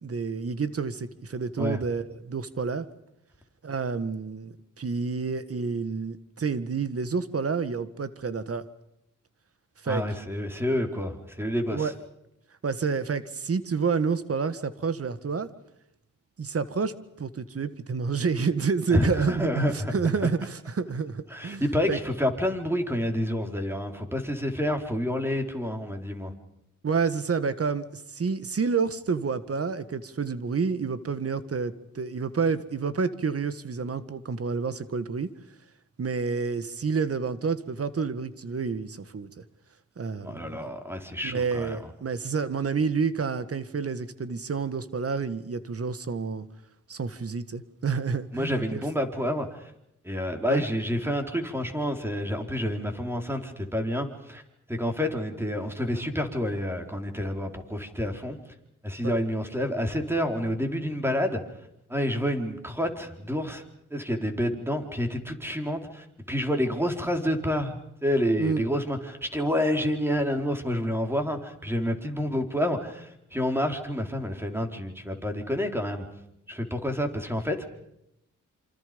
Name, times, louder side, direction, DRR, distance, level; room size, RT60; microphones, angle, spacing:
voice 1, 0.0-2.9 3.6-8.6 9.8-10.0 11.7-11.9 12.6-15.5 16.4-21.6 21.9-22.0 26.8-35.3 36.0-39.5 40.0-40.6 41.2-46.5 46.9-48.8 50.5-50.6 59.0-59.1 68.4-68.6, right 5 dB, 50° right, 13 dB, 1.8 m, -29 dB
voice 2, 9.9-11.9 18.9-19.9 21.3-26.3 40.2-41.9 48.3-49.7 50.0-54.4 54.7-58.4 58.8-61.4 61.9-63.6 63.9-76.1 76.5-77.7, equal, 5° right, 4 dB, 4.5 m, -28 dB
27.5 x 25.5 x 5.4 m, 0.80 s
supercardioid pair, 55°, 31 cm